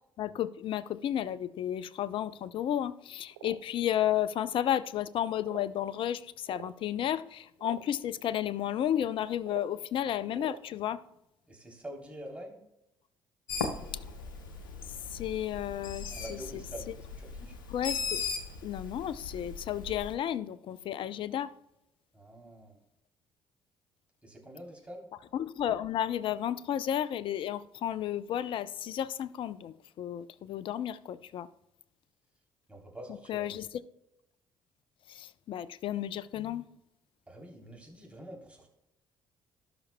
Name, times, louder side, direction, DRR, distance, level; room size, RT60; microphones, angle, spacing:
voice 1, 0.2-11.0 15.1-16.4 17.7-18.2 18.6-21.5 25.3-31.5 33.3-33.7 35.1-36.7, left 11 dB, 55° left, 0.5 m, -32 dB
sound 1, 3.3-3.6 4.5-4.6 5.4-5.8 6.5-6.7 7.6-7.8 9.4-9.7 10.3-10.6, right 12 dB, 80° right, 0.5 m, -45 dB
voice 2, 11.5-12.6 16.1-16.9 17.2-17.6 22.1-22.8 24.2-25.1 32.7-33.5 37.3-38.7, equal, 10° right, 3.2 m, -46 dB
Bird, 13.5-20.1, left 4 dB, 85° left, 0.8 m, -38 dB
17.5 x 6.0 x 2.2 m
hypercardioid pair, 50°, 11 cm